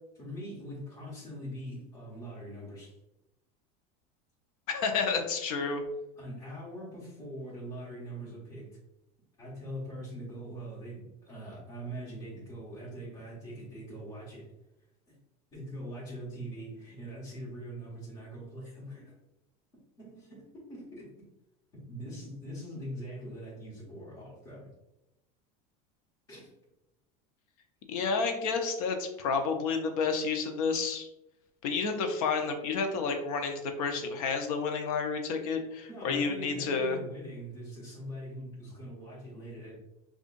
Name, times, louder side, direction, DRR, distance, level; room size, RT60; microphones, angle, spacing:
voice 1, 0.2-3.0 6.2-8.8 9.4-14.5 15.1-15.2 15.5-19.1 20.0-21.1 21.9-24.7 26.3-26.5 35.9-39.8, equal, 20° left, -9 dB, 1.5 m, -42 dB
voice 2, 4.7-5.8 27.9-31.1 31.6-37.0, left 5 dB, 80° left, 5 dB, 0.7 m, -30 dB
5.1 x 2.5 x 2.5 m, 0.89 s
cardioid pair, 180°, 18 cm